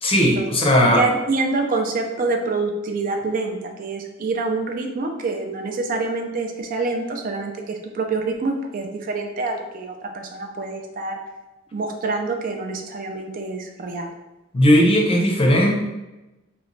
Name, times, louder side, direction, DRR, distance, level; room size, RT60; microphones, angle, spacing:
voice 1, 0.0-1.0 14.5-15.8, equal, 30° left, 0 dB, 0.6 m, -17 dB
voice 2, 0.8-11.2 11.7-14.1, right 3 dB, 45° right, 3 dB, 0.4 m, -26 dB
2.9 x 2.1 x 3.8 m, 1.0 s
head